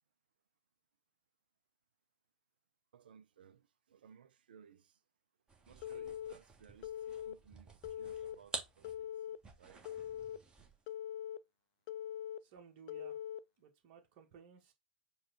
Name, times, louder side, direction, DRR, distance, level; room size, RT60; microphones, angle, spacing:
voice 1, 2.9-5.0 5.6-9.1 9.6-9.8, right 7 dB, 70° right, 0.6 m, -61 dB
sound 1, 5.5-10.9, right 3 dB, 15° right, 1.3 m, -50 dB
Telephone, 5.8-6.3 6.8-7.3 7.8-8.3 8.8-9.4 9.8-10.4 10.9-11.4 11.9-12.4 12.9-13.4, left 10 dB, 50° left, 0.4 m, -42 dB
voice 2, 12.4-13.2 13.6-14.7, right 7 dB, 45° right, 1.6 m, -58 dB
4.9 x 2.5 x 4.2 m
figure-of-eight pair, 105°, 5 cm